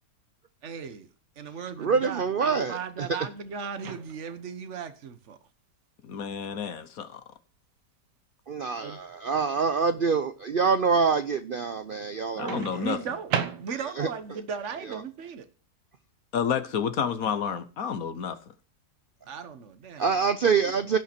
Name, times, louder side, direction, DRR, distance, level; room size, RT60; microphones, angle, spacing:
voice 1, 0.6-1.1 1.4-5.4 8.8-9.0 12.3-15.4 19.3-20.1, right 6 dB, 50° right, 1.4 m, -37 dB
voice 2, 1.8-3.1 8.5-12.8 14.0-14.1 20.0-21.0, right 5 dB, 70° right, 0.5 m, -25 dB
Microwave oven, 3.8-4.5 6.5-6.7 12.5-14.1, right 7 dB, 90° right, 1.7 m, -34 dB
voice 3, 6.0-7.2 12.4-13.0 16.3-18.4, left 7 dB, 60° left, 1.3 m, -30 dB
16.5 x 5.6 x 4.4 m
omnidirectional pair, 1.8 m